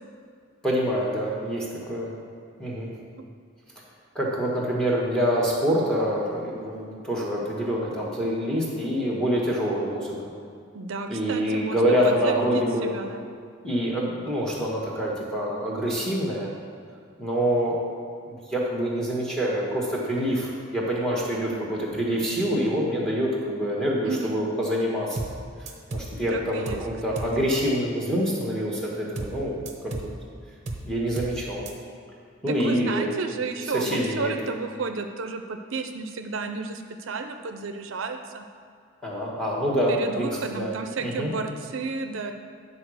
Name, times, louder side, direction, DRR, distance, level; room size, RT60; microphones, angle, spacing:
voice 1, 0.6-2.1 2.6-2.9 4.1-10.3 11.1-12.9 13.6-16.5 17.2-17.8 18.3-25.2 25.9-30.1 30.8-31.6 32.4-33.1 33.7-34.3 39.0-40.7 41.0-41.3, equal, 5° left, -4 dB, 1.5 m, -26 dB
voice 2, 10.7-13.3 24.0-24.4 26.3-26.8 27.1-27.3 32.4-38.5 39.9-42.3, right 4 dB, 75° right, 6 dB, 0.5 m, -32 dB
sound 1, 25.2-25.4 25.7-26.1 26.7-26.9 27.2-27.4 29.2-29.4 29.7-30.1 30.7-30.9 31.2-31.4 31.7-31.8, right 2 dB, 35° right, 0.8 m, -33 dB
10.0 x 4.1 x 6.3 m, 2.3 s
head